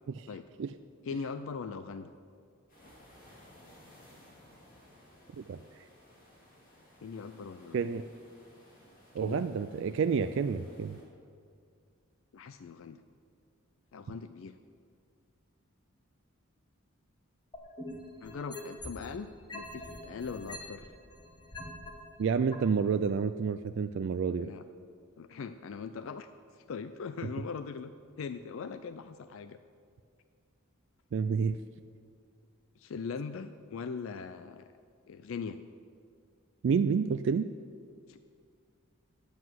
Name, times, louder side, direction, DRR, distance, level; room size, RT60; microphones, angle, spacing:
voice 1, 1.0-2.1 7.0-7.9 9.2-9.5 12.3-13.0 13.9-14.6 18.2-20.9 24.4-24.6 25.2-27.9 28.2-29.6 32.8-34.7 35.1-35.6 38.1-38.2, left 5 dB, 65° left, 11 dB, 0.4 m, -40 dB
sound 1, 2.7-11.0, left 1 dB, 40° left, 3.0 m, -58 dB
voice 2, 7.7-8.0 9.1-11.0 22.2-24.5 31.1-31.6 36.6-37.5, right 6 dB, 55° right, 9 dB, 0.3 m, -29 dB
sound 2, 17.5-19.1 19.5-21.9 22.5-22.6, left 1 dB, 20° left, 1.4 m, -43 dB
9.4 x 8.0 x 7.6 m, 2.2 s
head